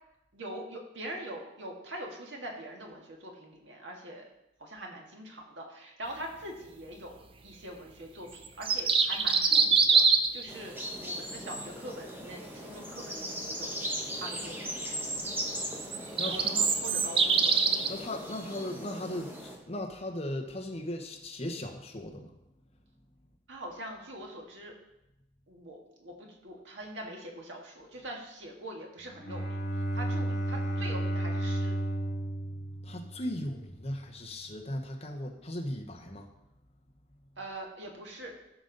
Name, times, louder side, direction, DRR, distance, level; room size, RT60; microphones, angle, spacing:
voice 1, 0.3-4.2 4.6-7.1 7.4-13.7 14.2-14.7 16.3-17.9 23.5-24.7 25.5-29.6 29.9-31.7 37.4-38.3, right 1 dB, 85° right, 0 dB, 1.8 m, -43 dB
sound 1, 8.4-10.4 15.8-17.9, right 5 dB, 30° right, 0.6 m, -24 dB
sound 2, 10.5-19.6, equal, 10° right, 1.2 m, -39 dB
voice 2, 16.2-16.7 17.9-22.3 32.0-32.5 32.8-36.3, left 1 dB, 35° left, 2 dB, 1.2 m, -38 dB
Bowed string instrument, 29.1-33.6, right 1 dB, 65° left, 2.7 m, -33 dB
13.5 x 5.5 x 4.0 m, 0.88 s
head